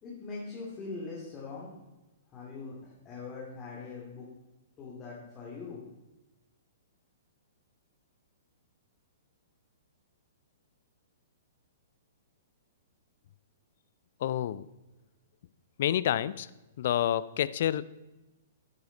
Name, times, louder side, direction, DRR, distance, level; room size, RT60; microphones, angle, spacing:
voice 1, 0.0-1.7 2.3-4.3 4.8-5.8, left 4 dB, 25° left, -5 dB, 2.7 m, -42 dB
voice 2, 14.2-14.7 15.8-16.5 16.8-17.8, left 11 dB, 55° left, 18 dB, 0.4 m, -28 dB
9.8 x 9.1 x 4.0 m, 1.0 s
figure-of-eight pair, 115°, 0 cm